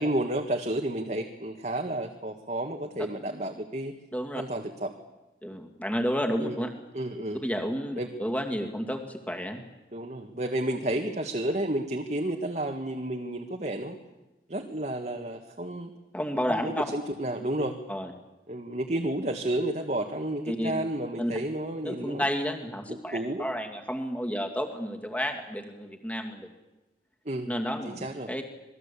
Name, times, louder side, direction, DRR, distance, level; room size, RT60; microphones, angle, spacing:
voice 1, 0.0-3.9 4.4-4.9 6.4-6.6 6.9-7.4 8.0-8.1 9.9-14.0 14.5-15.9 16.5-17.8 18.5-22.2 22.9-23.4 27.3-27.5 27.8-28.3, right 1 dB, 40° right, 3 dB, 1.8 m, -31 dB
voice 2, 4.1-4.4 5.4-6.7 7.4-9.6 16.1-16.9 17.9-18.1 20.5-20.7 21.2-21.4 21.8-26.5 27.5-28.4, equal, 10° left, 4 dB, 2.5 m, -31 dB
27.0 x 20.5 x 8.5 m, 1.0 s
head